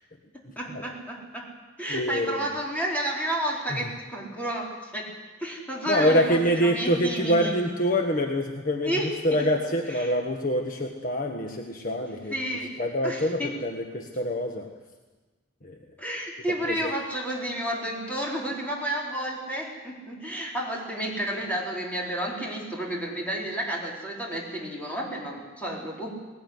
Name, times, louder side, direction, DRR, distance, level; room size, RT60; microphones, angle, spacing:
voice 1, 0.3-1.5 1.8-5.1 5.4-7.5 8.8-9.5 9.9-10.1 12.0-12.7 13.0-13.5 16.0-26.2, right 1 dB, 10° left, -3 dB, 4.5 m, -31 dB
voice 2, 1.9-2.5 3.7-3.8 5.9-8.9 9.2-12.4 12.8-14.7 15.6-15.8 16.7-16.9, equal, 45° left, 3 dB, 1.5 m, -25 dB
19.5 x 19.0 x 9.7 m, 1.2 s
head